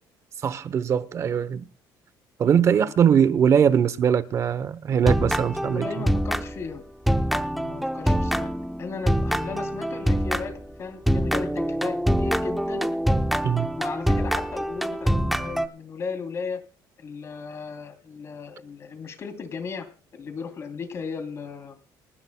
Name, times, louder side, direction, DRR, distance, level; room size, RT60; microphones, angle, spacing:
voice 1, 0.4-1.6 2.4-5.9 13.4-13.7, right 8 dB, 40° right, 0.9 m, -21 dB
sound 1, 4.9-6.8 7.1-10.7 11.1-15.7, equal, ahead, 0.8 m, -25 dB
voice 2, 5.7-8.5 8.8-12.9 13.8-16.6 17.0-19.9 20.1-21.8, left 5 dB, 35° left, 3.1 m, -36 dB
28.5 x 11.5 x 2.2 m
cardioid pair, 150°, 8 cm